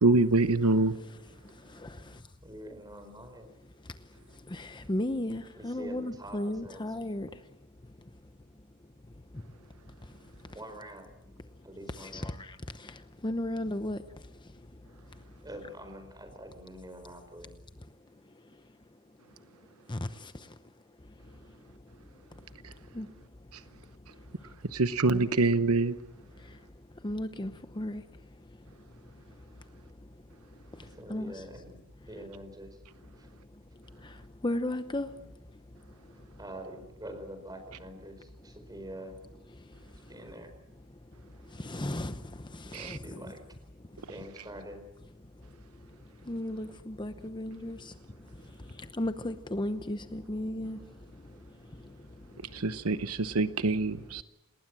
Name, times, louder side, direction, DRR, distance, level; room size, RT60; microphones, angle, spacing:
voice 1, 0.0-0.9 24.7-25.9 42.7-43.0 52.5-54.2, right 3 dB, 75° right, 0.9 m, -25 dB
voice 2, 2.4-3.5 5.6-6.8 10.5-11.1 11.6-12.4 15.4-17.5 31.0-31.8 32.1-32.8 33.2-33.3 36.4-39.2 40.1-40.5 42.7-43.4 44.1-44.8, right 1 dB, 20° right, 4.7 m, -45 dB
voice 3, 4.5-7.3 11.9-14.0 19.9-20.5 22.9-23.1 25.1-25.3 27.0-27.5 27.8-28.0 31.1-31.4 34.0-34.1 34.4-35.1 41.5-42.2 42.5-43.3 46.3-47.9 48.9-50.8, left 1 dB, 20° left, 0.8 m, -34 dB
28.0 x 20.0 x 7.7 m
head